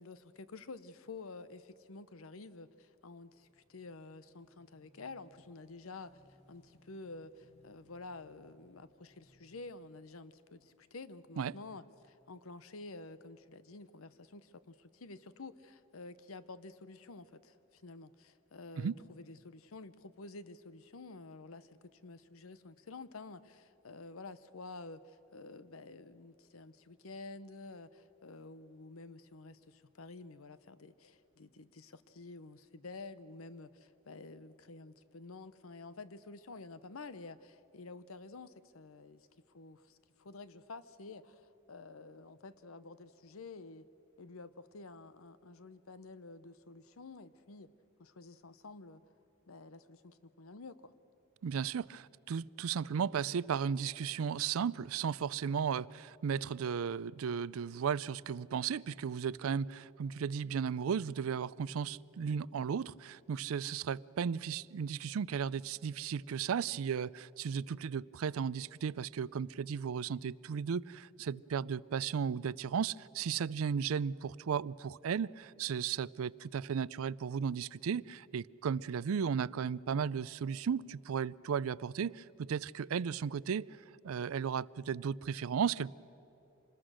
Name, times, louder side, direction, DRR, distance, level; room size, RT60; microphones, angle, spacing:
voice 1, 0.0-6.1 6.5-39.3 39.5-43.9 44.2-47.7 48.0-49.0 49.5-50.9, left 3 dB, 85° left, 14 dB, 0.8 m, -50 dB
Motorcycle / Engine, 2.8-11.3, left 1 dB, 30° left, 1.7 m, -68 dB
voice 2, 51.4-83.7 84.0-85.9, right 7 dB, 85° right, 22 dB, 0.4 m, -35 dB
26.5 x 20.0 x 6.4 m, 3.0 s
head